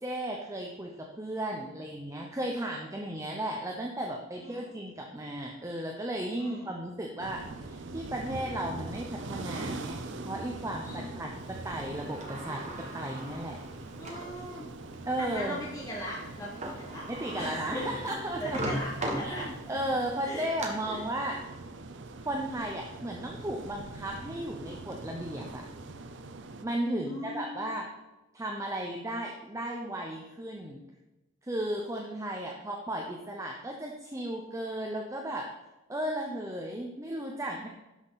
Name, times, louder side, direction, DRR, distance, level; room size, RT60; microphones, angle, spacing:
voice 1, 0.0-11.3 11.6-12.6 12.9-13.6 15.1-15.6 17.1-18.6 19.2-21.4 22.2-25.7 26.6-27.9 28.3-30.8 31.4-35.5 35.9-37.7, right 1 dB, 15° right, 0 dB, 0.8 m, -35 dB
voice 2, 4.4-4.7 6.3-6.7 10.8-11.1 14.0-14.7 15.2-17.0 17.4-17.8 18.4-19.5 20.2-20.5 20.8-21.0 27.0-27.7, equal, 15° left, -6 dB, 1.7 m, -39 dB
sound 1, 7.2-26.7, right 2 dB, 60° right, 0.6 m, -43 dB
Sliding door, 11.7-14.4 14.9-15.0 16.3-16.4 16.6-19.8 20.2-20.7, right 1 dB, 35° right, 1.4 m, -38 dB
12.0 x 5.9 x 4.1 m, 1.0 s
head